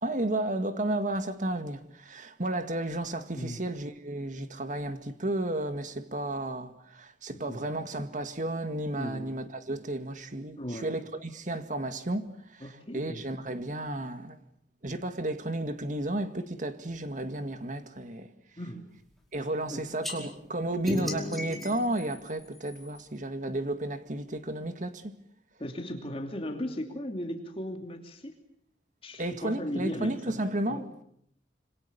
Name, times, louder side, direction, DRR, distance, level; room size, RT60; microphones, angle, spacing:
voice 1, 0.0-14.4 14.8-18.3 19.3-25.1 29.2-30.9, right 1 dB, 45° right, 2.0 m, -33 dB
voice 2, 7.3-7.6 9.0-9.4 10.6-10.9 12.6-13.2 18.6-18.8 19.4-19.9 25.6-28.3 29.0-30.4 30.7-31.0, equal, 35° left, 3.0 m, -37 dB
sound 1, 20.0-20.2 20.9-23.1, left 1 dB, ahead, 5.1 m, -35 dB
26.5 x 26.0 x 7.0 m
head